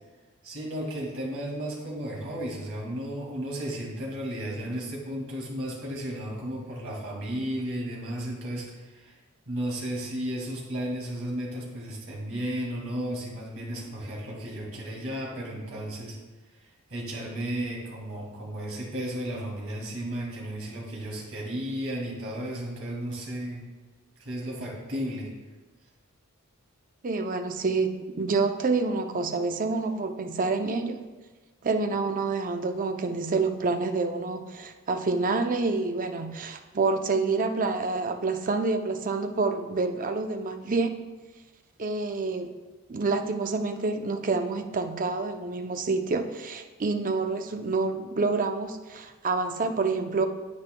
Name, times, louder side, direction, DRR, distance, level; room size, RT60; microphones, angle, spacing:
voice 1, 0.4-9.1 9.5-16.2 16.9-23.6 24.2-25.3, right 1 dB, 65° right, -3 dB, 2.4 m, -34 dB
voice 2, 27.0-31.0 31.6-40.9 41.8-42.5 42.9-50.3, right 3 dB, 40° right, 6 dB, 0.5 m, -28 dB
9.5 x 8.6 x 2.2 m, 1.3 s
head